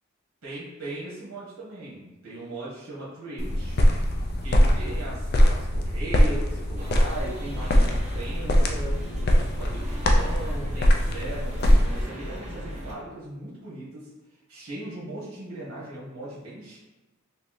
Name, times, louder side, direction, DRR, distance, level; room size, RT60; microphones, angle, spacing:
voice 1, 0.4-3.8 4.4-8.9 9.3-14.1 14.5-16.8, right 2 dB, 70° right, -7 dB, 1.1 m, -38 dB
sound 1, 3.4-12.0, equal, 50° left, 0.4 m, -22 dB
sound 2, 6.8-12.9, equal, 30° right, 0.8 m, -38 dB
2.9 x 2.7 x 3.8 m, 1.1 s
head